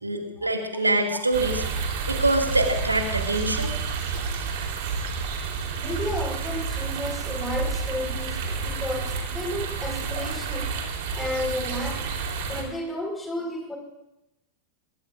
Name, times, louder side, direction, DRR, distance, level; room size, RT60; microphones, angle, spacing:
voice 1, 0.0-1.6 2.1-3.7, right 2 dB, 80° right, 3 dB, 2.2 m, -24 dB
sound 1, 1.3-12.6, right 5 dB, 50° right, 3.6 m, -30 dB
voice 2, 5.7-10.7 11.1-12.0 12.4-13.8, left 1 dB, 10° left, 2 dB, 4.7 m, -32 dB
23.5 x 22.0 x 2.5 m, 0.90 s
figure-of-eight pair, 90°, 0 cm